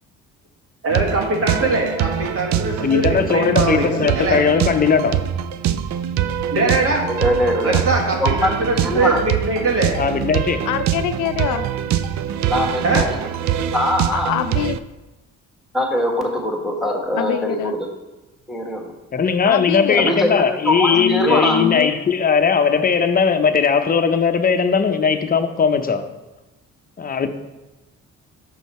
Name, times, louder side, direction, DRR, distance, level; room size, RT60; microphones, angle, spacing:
voice 1, 0.8-4.4 6.5-7.0 7.6-9.9 12.8-13.0, right 2 dB, 50° right, 1.7 m, -21 dB
sound 1, 0.9-14.8, right 10 dB, 65° right, 0.4 m, -24 dB
voice 2, 2.8-5.3 10.0-10.6 19.1-26.1 27.0-27.3, left 6 dB, 30° left, 0.7 m, -18 dB
voice 3, 7.1-7.8 8.2-9.2 12.5-13.1 13.7-14.3 15.7-17.7 18.5-18.9 20.0-21.6, left 1 dB, ahead, 1.4 m, -22 dB
voice 4, 10.7-11.7 14.1-14.8 17.2-17.8 19.5-20.2 20.9-21.9, left 11 dB, 80° left, 0.5 m, -24 dB
6.2 x 5.5 x 4.2 m
cardioid pair, 90°, 30 cm